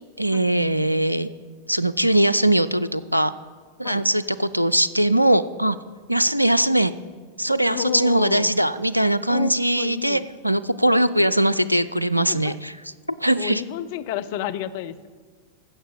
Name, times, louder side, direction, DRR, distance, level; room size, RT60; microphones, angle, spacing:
voice 1, 0.2-1.3 1.7-3.3 3.8-5.8 6.1-6.9 7.4-12.7 13.2-13.6, right 1 dB, 90° right, 15 dB, 0.4 m, -21 dB
voice 2, 7.7-8.6 9.3-10.2 12.3-12.6 13.4-15.1, left 9 dB, 50° left, 11 dB, 0.6 m, -30 dB
15.0 x 6.6 x 6.3 m, 1.5 s
figure-of-eight pair, 90°, 0 cm